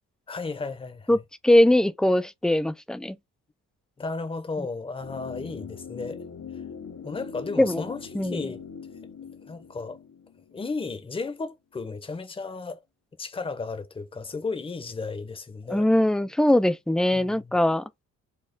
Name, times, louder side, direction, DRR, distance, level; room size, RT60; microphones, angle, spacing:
voice 1, 0.3-1.2 4.0-6.2 7.0-8.6 9.5-10.0 10.5-12.8 13.2-15.9 17.1-17.6, left 4 dB, 20° left, 0.7 m, -34 dB
voice 2, 1.4-3.2 4.6-4.7 7.6-7.8 8.1-8.5 15.7-17.8, left 1 dB, ahead, 0.3 m, -21 dB
sound 1, 5.0-11.0 11.3-11.4, left 6 dB, 75° left, 1.5 m, -41 dB
4.3 x 2.3 x 3.8 m
cardioid pair, 90°, 30 cm